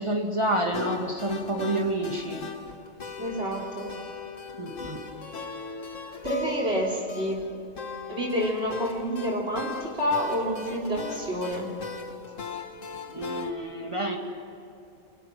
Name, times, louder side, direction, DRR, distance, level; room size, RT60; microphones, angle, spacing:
voice 1, 0.0-2.5 4.6-5.1 13.1-14.2, right 1 dB, 20° right, 1 dB, 2.5 m, -29 dB
sound 1, 0.7-13.5, left 4 dB, 70° left, 1.9 m, -39 dB
voice 2, 3.2-3.9 6.2-7.4 8.1-11.7, equal, 50° right, -1 dB, 3.8 m, -28 dB
29.0 x 24.5 x 6.1 m, 2.6 s
omnidirectional pair, 1.3 m